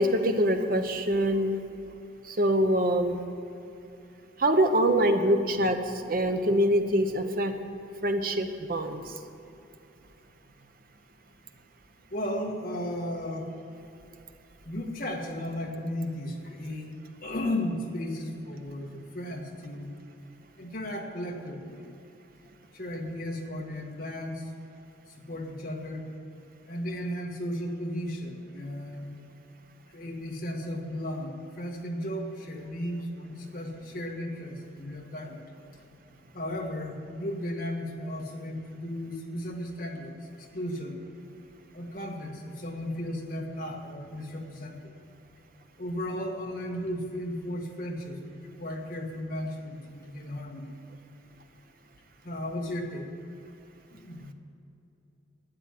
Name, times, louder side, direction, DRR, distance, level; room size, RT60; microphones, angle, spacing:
voice 1, 0.0-1.6 2.4-3.2 4.4-5.8 6.1-7.5 8.0-9.0, right 1 dB, 45° right, 6 dB, 0.9 m, -24 dB
voice 2, 12.1-13.5 14.6-16.9 17.2-20.0 20.6-21.8 22.7-24.5 25.3-26.1 26.7-29.3 29.9-35.4 36.3-40.1 40.5-41.0 41.7-44.9 45.8-50.7 52.2-53.1 54.0-54.3, left 1 dB, 45° left, 0 dB, 1.7 m, -35 dB
12.5 x 9.0 x 9.1 m, 2.7 s
head